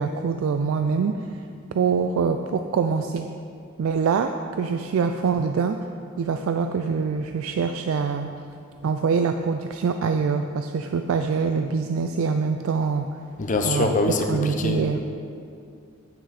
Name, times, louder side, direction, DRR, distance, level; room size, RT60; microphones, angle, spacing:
voice 1, 0.0-1.4 1.7-3.3 3.8-5.8 6.2-8.3 8.8-13.1 13.6-13.9 14.3-15.0, right 5 dB, 80° right, 7 dB, 0.3 m, -24 dB
voice 2, 13.4-15.0, left 2 dB, 40° left, 4 dB, 0.7 m, -24 dB
9.3 x 6.1 x 4.2 m, 2.4 s
head